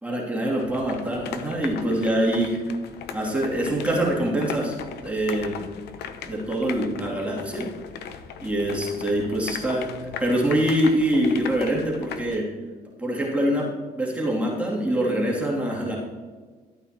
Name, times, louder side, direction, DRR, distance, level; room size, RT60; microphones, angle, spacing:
voice 1, 0.0-2.6 3.1-4.8 5.0-5.6 6.2-7.7 8.4-9.9 10.2-12.5 13.0-13.7 13.9-16.0, right 1 dB, 10° right, -4 dB, 2.7 m, -24 dB
sound 1, 0.6-12.4, left 7 dB, 75° left, 0.8 m, -38 dB
13.5 x 8.9 x 2.9 m, 1.4 s
cardioid pair, 110°, 17 cm